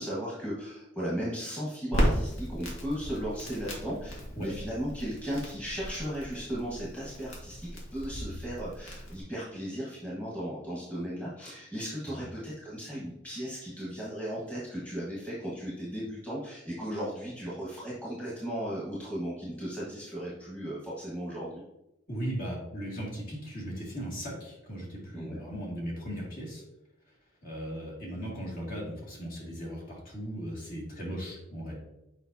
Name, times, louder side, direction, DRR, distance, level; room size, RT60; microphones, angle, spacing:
voice 1, 0.0-21.6 25.1-25.4, equal, 5° left, -8 dB, 1.5 m, -36 dB
Crackle, 1.9-9.2, equal, 80° left, 1.7 m, -34 dB
voice 2, 22.1-26.6 27.4-31.8, equal, 45° left, -5 dB, 2.2 m, -37 dB
7.2 x 5.1 x 2.7 m, 0.90 s
head